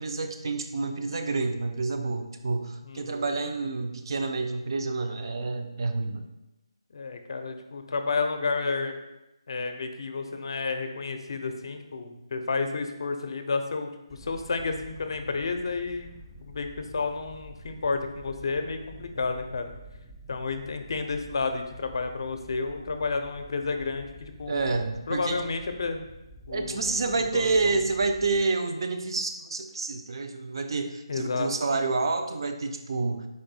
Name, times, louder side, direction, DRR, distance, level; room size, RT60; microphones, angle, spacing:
voice 1, 0.0-6.2 24.5-25.4 26.5-33.3, right 3 dB, 55° right, 6 dB, 0.5 m, -28 dB
voice 2, 2.8-3.2 6.9-8.9 9.5-16.1 16.4-19.7 20.3-24.7 25.1-26.0 26.5-27.8 31.1-31.5, left 4 dB, 55° left, 6 dB, 0.5 m, -31 dB
sound 1, 14.1-28.5, equal, ahead, 0.4 m, -49 dB
4.3 x 2.6 x 4.0 m, 0.96 s
figure-of-eight pair, 155°, 3 cm